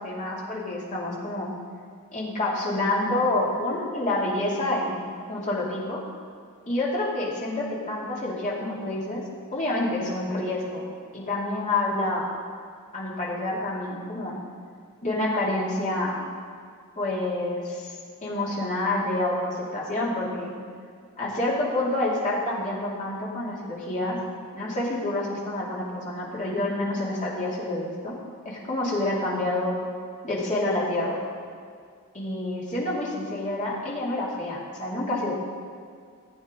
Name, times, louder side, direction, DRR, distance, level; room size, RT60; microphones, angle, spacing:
voice 1, 0.0-1.5 2.1-5.0 5.3-6.0 6.7-9.2 9.5-10.9 11.1-12.3 12.9-14.4 15.0-16.2 16.9-17.9 18.2-20.5 21.2-24.2 24.5-28.2 28.4-29.7 30.2-31.2 32.1-35.3, left 2 dB, 35° left, -5 dB, 2.6 m, -28 dB
15.5 x 8.6 x 3.8 m, 2.2 s
head